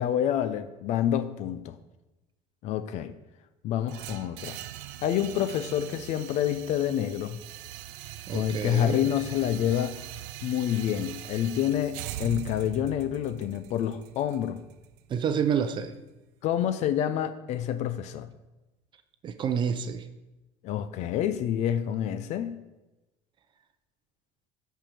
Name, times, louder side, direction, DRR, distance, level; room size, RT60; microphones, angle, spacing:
voice 1, 0.0-1.8 2.6-3.1 3.6-4.6 5.0-7.4 8.3-10.0 10.4-14.6 16.4-18.3 20.6-22.6, left 10 dB, 50° left, 11 dB, 0.5 m, -28 dB
sound 1, 3.9-15.9, right 12 dB, 85° right, 0.6 m, -42 dB
voice 2, 8.3-9.0 15.1-15.9 19.2-20.1, right 7 dB, 30° right, 10 dB, 0.6 m, -28 dB
13.5 x 4.6 x 5.1 m, 1.0 s
cardioid pair, 150°, 15 cm